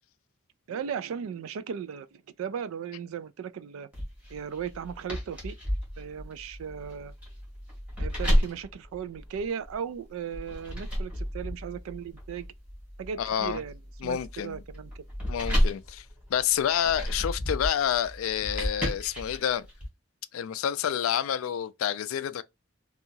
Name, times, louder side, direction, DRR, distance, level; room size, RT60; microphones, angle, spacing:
voice 1, 0.7-3.9 4.3-5.6 6.0-7.1 8.0-12.5 13.0-15.0, right 7 dB, 85° right, 0.3 m, -37 dB
sound 1, 3.9-9.7 10.3-19.9, equal, 5° right, 1.2 m, -32 dB
voice 2, 13.2-13.6 14.0-14.6 15.3-19.7 20.3-22.4, left 9 dB, 85° left, 0.3 m, -28 dB
2.8 x 2.3 x 2.6 m
head